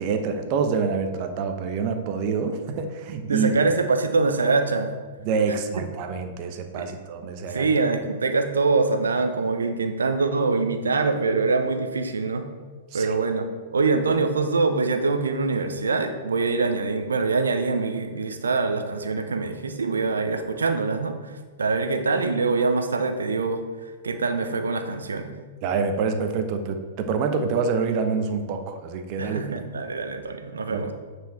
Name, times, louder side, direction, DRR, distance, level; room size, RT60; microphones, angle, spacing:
voice 1, 0.0-3.5 5.2-7.7 12.9-13.1 25.6-29.5 30.7-30.9, right 5 dB, 45° right, 6 dB, 0.9 m, -26 dB
voice 2, 3.3-4.9 5.5-5.9 6.8-6.9 7.5-12.5 12.9-13.5 13.7-21.3 21.6-23.6 24.0-25.3 29.2-30.9, right 3 dB, 80° right, 7 dB, 0.8 m, -24 dB
9.3 x 4.7 x 4.2 m, 1.4 s
figure-of-eight pair, 105°, 0 cm